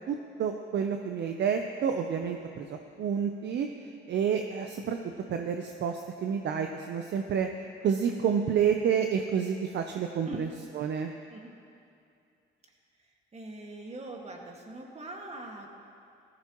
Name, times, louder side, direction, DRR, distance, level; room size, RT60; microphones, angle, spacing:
voice 1, 0.1-3.7 4.1-5.0 5.3-7.5 7.8-10.5 10.8-11.1, right 7 dB, 60° right, 5 dB, 0.7 m, -29 dB
voice 2, 13.0-15.7, right 2 dB, 35° right, 1 dB, 1.8 m, -42 dB
16.0 x 14.5 x 3.0 m, 2.5 s
cardioid pair, 90°, 20 cm